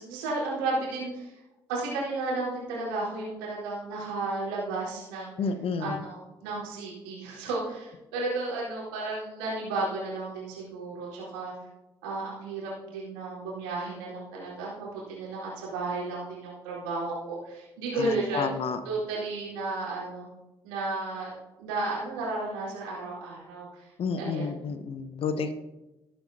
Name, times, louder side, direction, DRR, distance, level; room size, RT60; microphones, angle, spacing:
voice 1, 0.0-1.4 1.7-5.3 5.8-11.5 12.0-18.5 18.8-20.3 20.6-21.3 21.6-23.9 24.2-24.5, right 2 dB, 75° right, -6 dB, 4.2 m, -33 dB
voice 2, 5.4-6.0 18.0-18.8 24.0-25.5, left 5 dB, 50° left, 11 dB, 0.9 m, -30 dB
19.0 x 8.7 x 2.8 m, 1.0 s
figure-of-eight pair, 40°, 12 cm